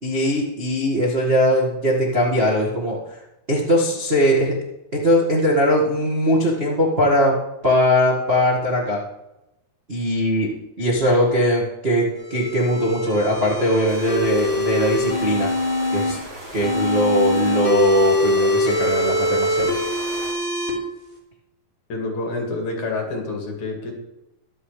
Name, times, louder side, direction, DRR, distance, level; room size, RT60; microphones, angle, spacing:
voice 1, 0.0-3.0 3.5-4.6 4.9-7.3 7.6-9.0 9.9-10.5 10.8-15.5 15.9-16.2 16.5-19.8, equal, 60° right, -5 dB, 0.6 m, -20 dB
sound 1, 12.2-16.1 16.6-20.7, left 1 dB, 35° left, 2.3 m, -23 dB
sound 2, 13.9-20.3, right 1 dB, 35° right, 4.5 m, -37 dB
voice 2, 21.9-23.9, left 2 dB, 50° left, 1 dB, 3.1 m, -28 dB
22.0 x 7.6 x 3.3 m, 0.93 s
omnidirectional pair, 4.8 m